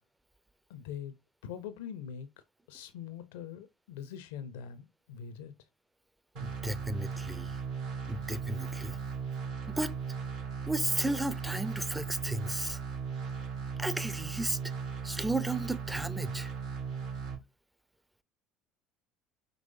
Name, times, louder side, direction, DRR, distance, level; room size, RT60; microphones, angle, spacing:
voice 1, 0.7-1.1 1.4-2.3 2.7-5.5, left 8 dB, 80° left, 0.5 m, -43 dB
sound 1, 6.3-17.3, right 6 dB, 70° right, 2.6 m, -37 dB
voice 2, 6.4-7.6 8.1-9.0 9.7-9.9 10.7-12.8 13.8-14.6 15.0-16.5, right 2 dB, 10° right, 0.5 m, -34 dB
5.4 x 3.1 x 2.5 m
hypercardioid pair, 70°, 0 cm